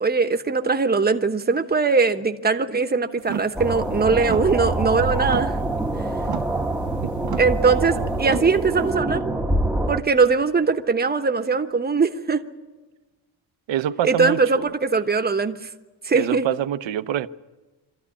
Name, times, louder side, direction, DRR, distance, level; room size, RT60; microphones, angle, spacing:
voice 1, 0.0-5.6 7.4-9.2 9.9-12.4 14.0-15.6 16.0-16.5, right 4 dB, 20° right, 1.1 m, -21 dB
sound 1, 3.2-8.9, right 8 dB, 40° right, 0.6 m, -34 dB
sound 2, 3.5-10.0, right 2 dB, ahead, 1.0 m, -25 dB
voice 2, 13.7-14.7 16.1-17.3, right 11 dB, 70° right, 0.9 m, -25 dB
25.0 x 14.0 x 9.8 m
cardioid pair, 165°, 47 cm